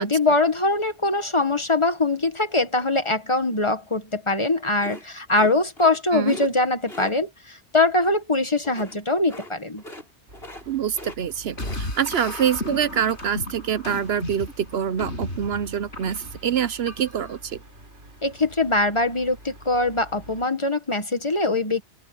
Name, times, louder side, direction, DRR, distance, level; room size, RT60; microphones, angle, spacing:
voice 1, 0.0-9.8 18.2-21.8, left 2 dB, 25° left, 1.6 m, -22 dB
sound 1, 4.8-6.0 6.2-6.5 6.9-7.1 8.6-9.0 9.3-9.5 9.8-10.1 10.3-10.7 10.9-11.8 12.1-12.5, left 1 dB, 60° left, 7.3 m, -40 dB
sound 2, 10.3-20.5, right 1 dB, 90° right, 7.6 m, -47 dB
voice 2, 10.7-17.6, right 8 dB, 70° right, 0.9 m, -25 dB
sound 3, 11.6-17.4, left 1 dB, 90° left, 8.4 m, -35 dB
open air
omnidirectional pair, 1.1 m